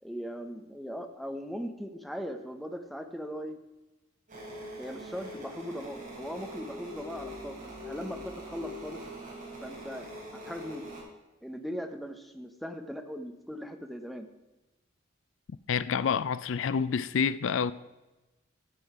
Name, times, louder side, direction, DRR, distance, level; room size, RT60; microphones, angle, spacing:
voice 1, 0.0-3.6 4.8-9.0 9.6-10.1 10.4-10.8 11.4-14.3, equal, ahead, 0.8 m, -39 dB
sound 1, 4.3-11.0, equal, 40° right, 4.4 m, -43 dB
voice 2, 15.7-17.7, left 6 dB, 70° left, 0.4 m, -28 dB
13.5 x 7.8 x 4.9 m
head